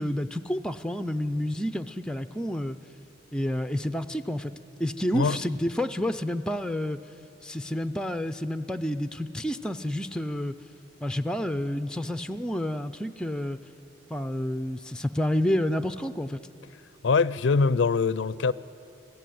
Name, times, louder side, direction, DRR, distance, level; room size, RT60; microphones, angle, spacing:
voice 1, 0.0-2.8 3.3-4.5 4.8-7.0 7.4-10.5 11.0-13.6 14.1-16.4, left 1 dB, 5° left, 0.5 m, -29 dB
voice 2, 17.0-18.5, left 4 dB, 80° left, 0.5 m, -23 dB
26.0 x 16.5 x 9.3 m
head